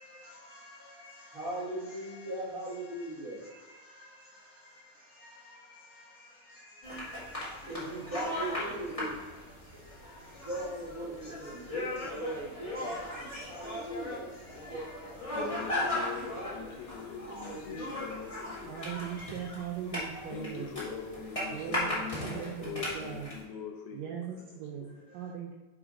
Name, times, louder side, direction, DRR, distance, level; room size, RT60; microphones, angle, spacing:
voice 1, 0.0-16.0 16.3-16.4 17.3-18.1 20.1-20.9 25.2-25.3, right 1 dB, 60° right, -11 dB, 0.9 m, -42 dB
sound 1, 6.8-23.4, left 1 dB, 30° left, 0.6 m, -38 dB
voice 2, 15.3-18.8 20.3-25.0, left 7 dB, 80° left, 3 dB, 2.8 m, -42 dB
voice 3, 18.7-20.7 21.5-23.3 23.9-24.9 25.1-25.5, right 8 dB, 80° right, -2 dB, 2.0 m, -39 dB
5.1 x 4.8 x 5.0 m, 1.2 s
omnidirectional pair, 4.6 m